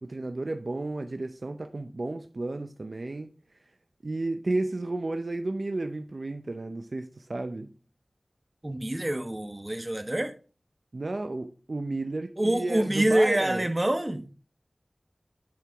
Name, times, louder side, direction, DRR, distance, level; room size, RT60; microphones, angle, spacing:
voice 1, 0.0-3.3 4.0-7.7 10.9-13.7, right 2 dB, 60° right, 0.6 m, -32 dB
voice 2, 8.6-10.4 12.4-14.3, right 1 dB, 25° right, 1.1 m, -26 dB
10.5 x 4.7 x 3.5 m
wide cardioid pair, 45°, 0 cm